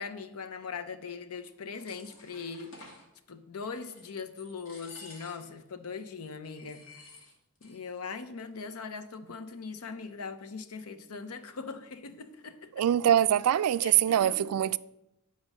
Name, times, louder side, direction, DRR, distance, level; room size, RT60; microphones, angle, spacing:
voice 1, 0.0-2.8 3.3-6.8 7.6-12.8 13.8-14.5, left 5 dB, 90° left, 0.7 m, -40 dB
sound 1, 1.4-3.1 3.6-4.1 4.4-5.6 5.9-6.0 6.4-7.8 8.0-8.1 8.4-8.9, left 3 dB, 65° left, 2.1 m, -52 dB
voice 2, 12.8-14.8, right 10 dB, 85° right, 0.3 m, -24 dB
9.0 x 5.1 x 5.4 m
head